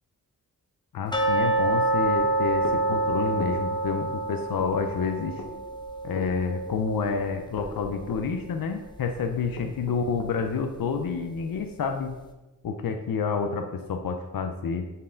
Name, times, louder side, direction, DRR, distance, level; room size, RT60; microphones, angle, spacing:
voice 1, 0.9-5.4 6.0-12.2 12.6-14.9, left 5 dB, 90° left, 6 dB, 0.6 m, -29 dB
sound 1, 1.1-8.0 8.3-8.4 8.9-9.0 9.5-9.6, right 2 dB, 15° left, 0.9 m, -27 dB
sound 2, 2.6-3.6 4.6-4.8 5.4-5.6 6.2-6.3 7.6-8.3 9.6-10.4, left 3 dB, 65° left, 1.2 m, -38 dB
8.8 x 4.6 x 3.8 m, 1.1 s
wide cardioid pair, 75°, 34 cm